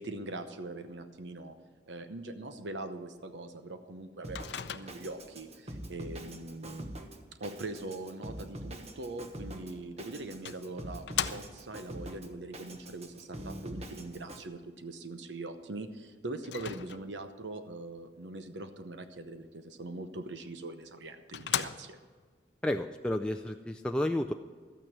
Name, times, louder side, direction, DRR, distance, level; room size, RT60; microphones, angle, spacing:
voice 1, 0.0-1.6 1.9-6.9 7.4-11.0 11.3-22.0, right 2 dB, 90° right, 9 dB, 0.9 m, -42 dB
Drum kit, 4.2-14.4, right 1 dB, 40° right, 1.1 m, -44 dB
Microwave oven, 4.4-5.3 9.6-9.7 10.5-11.8 16.4-17.3 20.5-20.6 21.0-21.1 21.3-22.2, left 9 dB, 70° left, 0.5 m, -37 dB
voice 2, 22.6-24.3, left 1 dB, 5° left, 4 dB, 0.4 m, -31 dB
13.0 x 9.2 x 6.1 m, 1.6 s
head